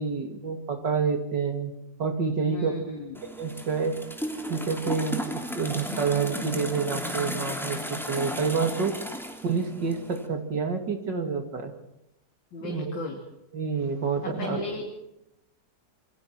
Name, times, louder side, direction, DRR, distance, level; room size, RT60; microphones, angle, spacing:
voice 1, 0.0-1.7 2.0-2.9 3.4-4.0 4.5-9.0 9.4-11.7 12.6-13.0 13.5-14.6, right 5 dB, 70° right, 6 dB, 3.2 m, -28 dB
voice 2, 2.4-3.2 12.5-13.2 14.2-14.9, left 2 dB, 85° left, 0 dB, 3.7 m, -35 dB
sound 1, 3.1-10.3, equal, ahead, 2.9 m, -35 dB
28.0 x 24.0 x 4.5 m, 0.85 s
omnidirectional pair, 2.0 m